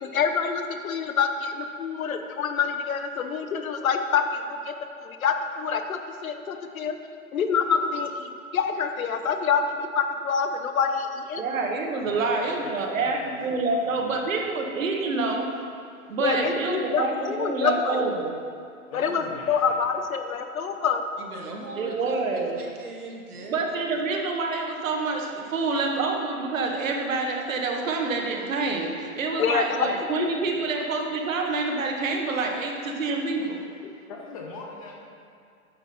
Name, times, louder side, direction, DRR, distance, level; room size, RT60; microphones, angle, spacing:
voice 1, 0.0-4.7 5.0-7.0 7.3-11.4 16.2-18.0 18.9-21.0 29.4-29.9 30.2-30.3, left 6 dB, 70° left, 6 dB, 0.9 m, -26 dB
voice 2, 11.4-15.7 16.1-18.4 21.7-22.6 23.5-33.6, right 3 dB, 65° right, 2 dB, 1.4 m, -27 dB
voice 3, 12.1-14.6 16.3-16.7 18.9-19.8 34.1-35.0, left 3 dB, 25° left, 0 dB, 0.7 m, -41 dB
voice 4, 21.2-23.6, right 2 dB, 90° right, -1 dB, 1.9 m, -39 dB
8.9 x 5.8 x 4.3 m, 2.4 s
hypercardioid pair, 145°, 43 cm